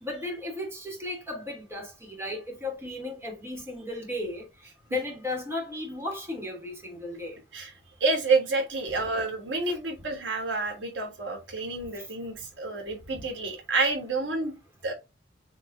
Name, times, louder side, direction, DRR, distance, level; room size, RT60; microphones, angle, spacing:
voice 1, 0.0-4.4 4.9-7.4, left 2 dB, 15° right, 3.1 m, -35 dB
voice 2, 8.0-14.5 14.8-14.9, right 3 dB, 80° right, 3.1 m, -28 dB
7.8 x 4.7 x 2.7 m
head